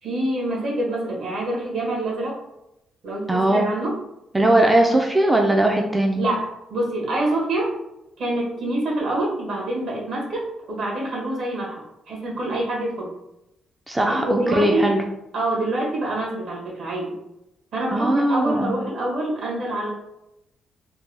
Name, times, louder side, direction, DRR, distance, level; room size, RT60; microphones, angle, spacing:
voice 1, 0.0-2.4 3.0-3.9 6.2-7.7 8.2-13.1 14.0-15.0 15.3-17.1 17.7-19.9, right 1 dB, 65° right, -3 dB, 1.3 m, -26 dB
voice 2, 3.3-3.7 4.3-6.2 13.9-15.0 17.9-18.7, right 1 dB, 10° right, 1 dB, 0.3 m, -19 dB
3.3 x 2.2 x 3.3 m, 0.86 s
cardioid pair, 115°, 0 cm